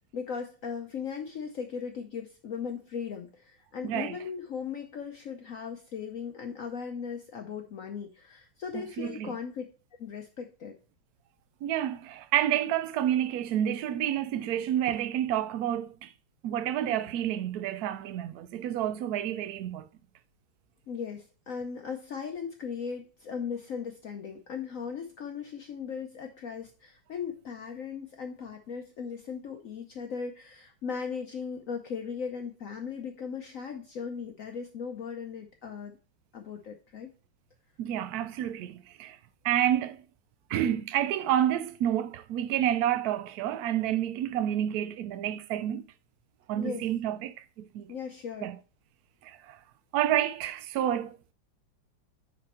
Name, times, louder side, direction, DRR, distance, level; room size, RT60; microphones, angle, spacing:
voice 1, 0.1-9.6 10.0-10.8 20.9-36.0 36.3-37.1 46.6-46.9 47.9-48.5, left 6 dB, 70° left, 0.8 m, -38 dB
voice 2, 3.8-4.2 8.7-9.3 11.6-16.1 16.4-19.9 37.8-39.2 39.4-40.0 40.5-45.9 46.5-47.9 48.4-48.6 49.2-49.6 49.9-51.2, right 11 dB, 75° right, 0.8 m, -29 dB
9.2 x 4.2 x 4.2 m
omnidirectional pair, 2.2 m